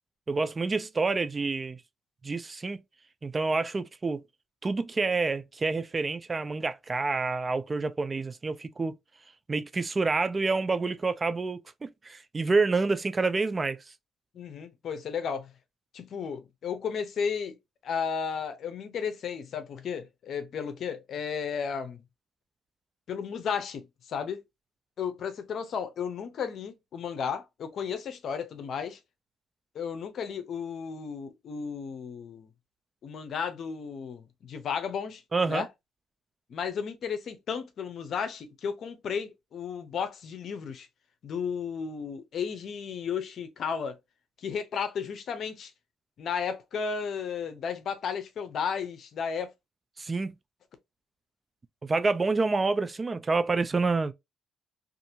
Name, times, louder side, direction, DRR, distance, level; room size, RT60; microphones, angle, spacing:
voice 1, 0.3-1.8 2.2-2.8 3.2-4.2 4.6-8.9 9.5-13.8 35.3-35.7 50.0-50.3 51.8-54.1, right 3 dB, 30° right, 0.3 m, -28 dB
voice 2, 14.3-15.5 15.9-17.6 17.8-22.0 23.1-24.4 25.0-29.0 29.7-32.5 33.0-35.2 35.5-35.7 36.5-40.9 41.2-44.0 44.4-45.7 46.2-49.5, left 6 dB, 65° left, 0.6 m, -34 dB
2.7 x 2.5 x 2.7 m
cardioid pair, 90°, 0 cm